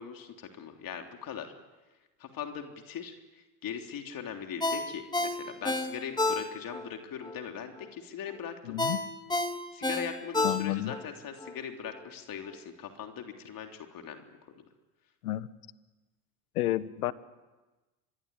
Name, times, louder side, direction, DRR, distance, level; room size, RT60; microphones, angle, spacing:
voice 1, 0.0-1.5 2.2-8.8 9.5-14.3, left 8 dB, 50° left, 4 dB, 3.4 m, -40 dB
Ringtone, 4.6-6.9 7.2-7.4 8.8-11.0 11.4-11.5, left 2 dB, 10° left, 3.5 m, -30 dB
voice 2, 8.6-9.0 10.4-11.0 15.2-15.5 16.5-17.1, left 15 dB, 85° left, 16 dB, 1.3 m, -30 dB
25.5 x 23.0 x 9.9 m, 1.2 s
hypercardioid pair, 80°, 43 cm